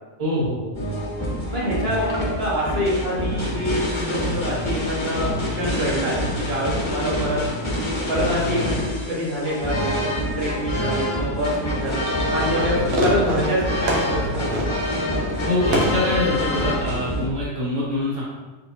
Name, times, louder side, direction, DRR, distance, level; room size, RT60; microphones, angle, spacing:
voice 1, 0.2-0.7 15.5-18.2, left 1 dB, 35° right, -7 dB, 1.2 m, -24 dB
sound 1, 0.7-17.3, left 1 dB, 30° left, 0.7 m, -26 dB
voice 2, 1.5-7.4 8.1-12.0 12.3-14.5, equal, 60° right, -7 dB, 1.5 m, -26 dB
Fireworks, 11.7-16.9, equal, 80° right, 1.1 m, -28 dB
4.4 x 4.0 x 2.7 m, 1.2 s
omnidirectional pair, 1.2 m